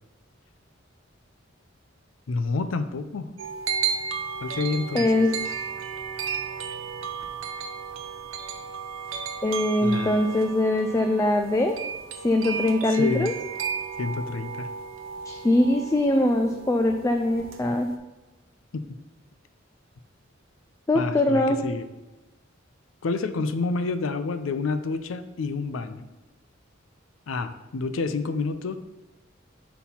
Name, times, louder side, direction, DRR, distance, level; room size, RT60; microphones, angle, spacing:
voice 1, 2.3-3.3 4.4-5.0 9.8-10.2 12.9-13.3 14.0-14.7 20.9-21.9 23.0-26.1 27.3-28.7, left 3 dB, 85° left, 10 dB, 0.5 m, -28 dB
sound 1, 3.4-18.0, right 6 dB, 80° right, 0.7 m, -34 dB
voice 2, 4.9-5.4 9.4-11.8 12.2-13.3 15.3-17.9 20.9-21.6, left 1 dB, 15° left, 5 dB, 0.3 m, -22 dB
5.7 x 4.2 x 5.7 m, 1.1 s
head